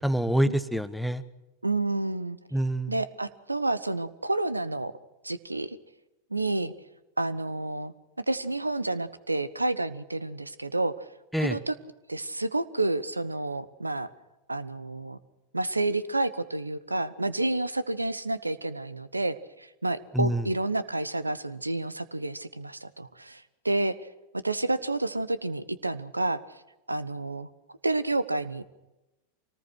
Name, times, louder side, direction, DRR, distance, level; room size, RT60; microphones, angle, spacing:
voice 1, 0.0-1.2 2.5-3.0 11.3-11.6 20.1-20.4, right 1 dB, ahead, 13 dB, 1.2 m, -26 dB
voice 2, 1.6-2.4 2.9-4.9 5.2-5.8 6.3-6.7 7.2-10.9 11.4-11.7 12.1-14.1 14.5-15.2 15.5-24.0 24.4-26.4 26.9-27.5 27.8-28.6, right 2 dB, 85° right, 16 dB, 1.1 m, -29 dB
25.5 x 19.0 x 6.3 m, 0.98 s
figure-of-eight pair, 90°, 0 cm